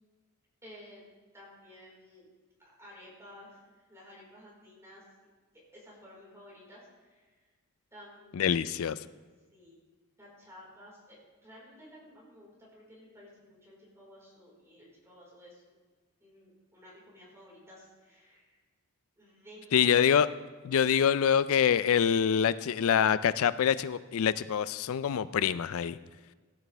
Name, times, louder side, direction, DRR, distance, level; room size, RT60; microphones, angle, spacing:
voice 1, 0.6-1.0 1.3-2.3 2.8-5.0 5.5-7.5 7.9-9.0 9.5-9.7 10.2-15.6 16.2-18.6 19.2-19.9, left 1 dB, 10° right, -6 dB, 4.6 m, -53 dB
voice 2, 8.3-9.0 19.7-20.3 20.6-26.0, left 8 dB, 65° left, 15 dB, 0.4 m, -25 dB
17.0 x 11.5 x 3.4 m, 1.4 s
head